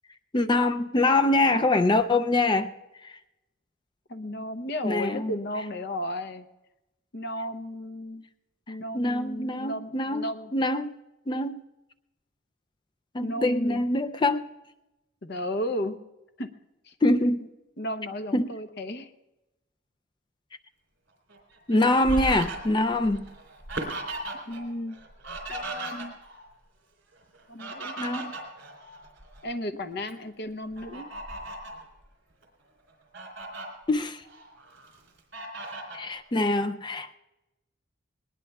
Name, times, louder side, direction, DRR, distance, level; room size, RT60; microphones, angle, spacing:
voice 1, 0.3-2.7 3.0-3.2 4.8-5.3 8.7-10.9 11.3-11.6 13.1-14.5 17.0-17.4 18.3-18.5 21.7-23.2 28.0-28.3 33.9-34.2 35.9-37.1, left 2 dB, 20° left, 9 dB, 0.4 m, -24 dB
voice 2, 4.1-6.5 7.1-8.2 8.7-10.5 13.2-13.8 15.2-16.0 16.4-16.5 16.9-17.0 17.8-19.1 24.5-25.0 25.5-26.2 27.5-28.0 29.4-31.1, left 1 dB, 50° left, 9 dB, 0.8 m, -34 dB
Fowl, 21.3-24.6 24.9-26.4 27.3-29.4 29.9-30.1 30.7-31.8 32.4-32.5 32.9-33.7 34.2-34.9 35.3-36.0, right 2 dB, 60° right, 3.5 m, -37 dB
20.5 x 19.5 x 2.3 m, 0.97 s
head